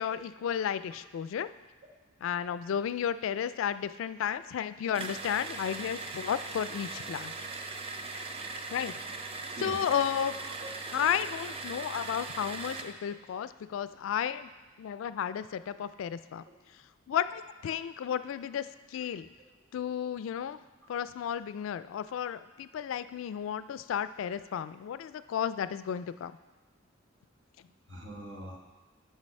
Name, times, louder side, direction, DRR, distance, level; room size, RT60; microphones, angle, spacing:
voice 1, 0.0-1.5 2.2-7.3 8.7-8.9 9.6-10.3 10.9-14.5 14.8-16.4 17.1-19.3 19.7-20.6 20.9-26.4, left 8 dB, 75° left, 15 dB, 0.3 m, -33 dB
sound 1, 4.9-13.0, right 3 dB, 30° right, 0.5 m, -39 dB
voice 2, 10.3-10.7 13.1-13.2 27.9-28.6, right 1 dB, 70° right, -1 dB, 1.3 m, -44 dB
7.4 x 5.1 x 5.3 m, 1.2 s
head